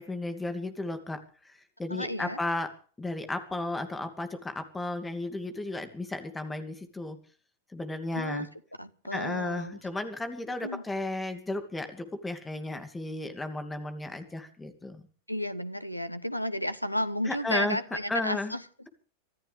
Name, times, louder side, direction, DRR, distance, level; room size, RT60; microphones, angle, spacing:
voice 1, 0.0-2.7 3.0-7.2 7.7-8.5 9.1-15.1 17.3-17.8 18.1-18.5, left 2 dB, 10° left, 8 dB, 2.5 m, -34 dB
voice 2, 1.9-2.4 8.1-8.5 8.8-9.8 10.6-10.8 15.3-18.6, equal, 90° left, 15 dB, 1.1 m, -32 dB
25.5 x 13.5 x 3.5 m, 0.42 s
figure-of-eight pair, 90°, 0 cm